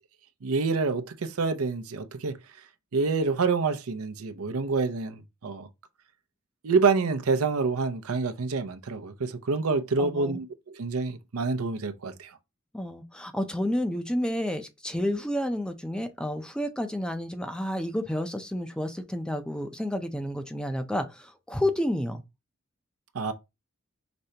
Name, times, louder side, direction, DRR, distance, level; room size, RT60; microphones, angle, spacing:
voice 1, 0.4-2.4 2.9-5.7 6.6-12.3 23.1-23.3, right 4 dB, 90° right, 0.6 m, -27 dB
voice 2, 10.0-10.4 12.7-22.2, left 1 dB, 5° left, 0.5 m, -30 dB
5.1 x 3.3 x 2.8 m
head